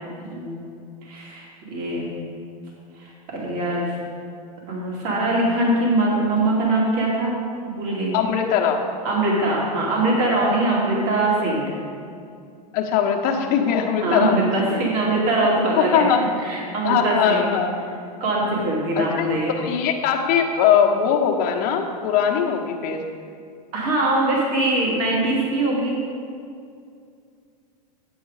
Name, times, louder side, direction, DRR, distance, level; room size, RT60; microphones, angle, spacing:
voice 1, 1.0-2.1 3.0-3.9 4.7-7.3 7.6-8.2 9.0-11.7 14.0-16.0 16.4-17.5 18.2-19.6 23.7-26.0, right 2 dB, 45° right, -4 dB, 2.4 m, -22 dB
voice 2, 8.1-8.8 12.7-14.4 14.7-14.8 15.8-16.2 16.8-17.9 18.9-23.0, left 8 dB, 45° left, 2 dB, 1.2 m, -21 dB
8.9 x 7.8 x 4.9 m, 2.4 s
supercardioid pair, 130°, 20 cm